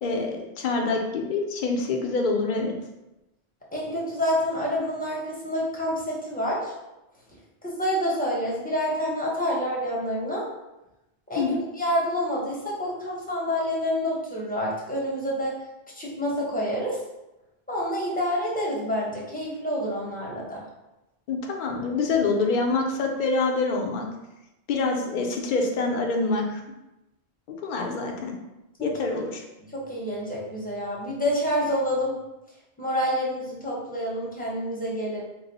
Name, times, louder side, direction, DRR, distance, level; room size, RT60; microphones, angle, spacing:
voice 1, 0.0-2.8 11.4-11.6 21.3-24.1 24.7-26.4 27.6-28.3 28.8-29.4, left 3 dB, 60° left, 1 dB, 0.6 m, -26 dB
voice 2, 3.7-6.7 7.6-10.4 11.3-11.5 11.8-15.5 16.0-17.0 17.7-20.6 28.8-28.9 29.7-32.1 32.8-35.2, equal, 10° left, -5 dB, 0.7 m, -28 dB
3.0 x 2.0 x 3.9 m, 0.96 s
omnidirectional pair, 1.0 m